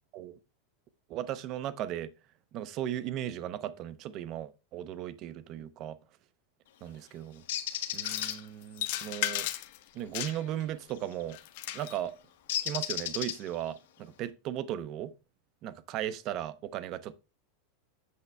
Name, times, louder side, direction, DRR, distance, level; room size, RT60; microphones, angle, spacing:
voice 1, 1.1-2.1 2.5-6.0 6.8-7.4 7.9-9.5 9.9-11.4 11.7-12.1 12.6-15.1 15.6-17.1, right 11 dB, 30° right, 0.5 m, -36 dB
Bird, 7.5-8.3 11.0-11.2 12.5-13.7, left 11 dB, 80° left, 1.5 m, -33 dB
sound 1, 7.9-8.4 8.8-9.8 10.1-10.6 11.3-12.0, left 14 dB, 45° left, 0.7 m, -35 dB
8.3 x 6.6 x 3.3 m
supercardioid pair, 175°, 0 cm